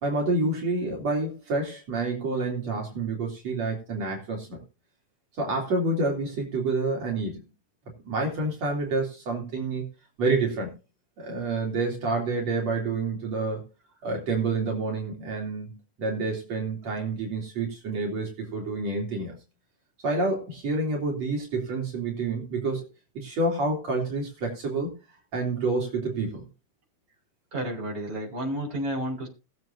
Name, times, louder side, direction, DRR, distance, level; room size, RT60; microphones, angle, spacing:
voice 1, 0.0-4.6 5.4-7.4 8.1-9.9 10.2-10.7 11.2-13.6 14.0-19.4 20.0-22.8 23.2-24.9 25.3-26.4, right 3 dB, 60° right, -1 dB, 4.4 m, -28 dB
voice 2, 27.5-29.3, right 1 dB, 25° right, -2 dB, 5.1 m, -31 dB
21.0 x 8.0 x 2.7 m, 0.29 s
omnidirectional pair, 3.4 m